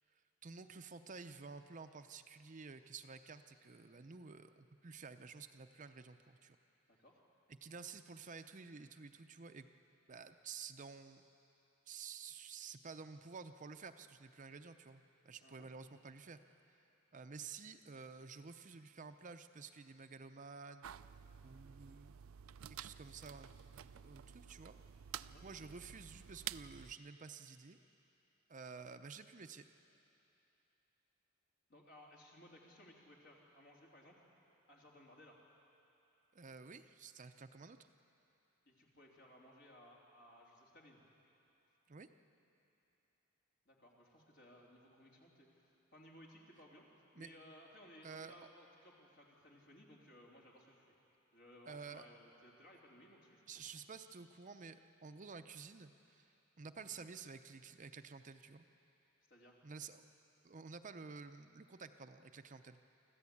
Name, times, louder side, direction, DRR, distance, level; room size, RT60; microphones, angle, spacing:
voice 1, 0.4-6.6 7.5-9.7 10.1-11.3 11.9-16.4 17.1-21.1 21.4-22.2 22.7-23.5 23.8-24.7 25.4-27.8 28.5-29.6 36.3-37.8 41.9-42.1 47.1-47.3 48.0-48.5 51.7-52.0 53.5-56.3 56.6-58.7 59.6-60.1 60.4-62.8, right 5 dB, 40° right, 8 dB, 0.6 m, -52 dB
voice 2, 6.9-7.2 15.4-15.7 25.2-25.5 31.7-34.2 34.7-35.4 38.7-41.0 43.7-46.9 47.2-51.0 51.3-53.4 56.8-57.0 59.3-59.6, left 1 dB, 60° left, -2 dB, 3.5 m, -61 dB
sound 1, 20.8-26.9, right 10 dB, 85° right, 0.4 m, -51 dB
25.0 x 14.5 x 8.5 m, 2.9 s
head